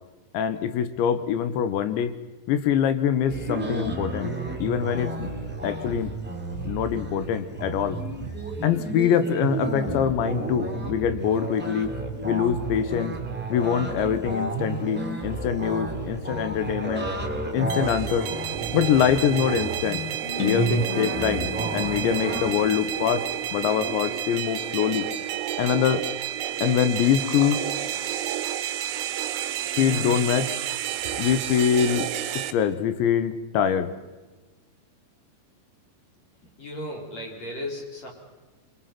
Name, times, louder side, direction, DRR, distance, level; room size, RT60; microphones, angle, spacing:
voice 1, 0.3-2.2 2.5-4.3 4.6-5.3 5.6-6.1 6.7-8.0 8.6-11.9 12.2-13.1 13.5-17.1 17.5-18.3 18.7-20.0 20.4-23.2 23.5-25.1 25.6-26.0 26.6-27.6 29.8-30.5 31.2-32.1 32.5-33.9, left 8 dB, 75° left, 12 dB, 3.1 m, -24 dB
sound 1, 3.3-22.5, right 2 dB, 5° right, 1.3 m, -32 dB
sound 2, 17.7-32.5, right 11 dB, 75° right, 2.2 m, -30 dB
sound 3, 20.4-24.3, left 5 dB, 55° left, 2.5 m, -35 dB
voice 2, 36.6-38.1, left 1 dB, 35° left, -1 dB, 4.9 m, -35 dB
25.5 x 24.0 x 5.9 m, 1.2 s
omnidirectional pair, 5.5 m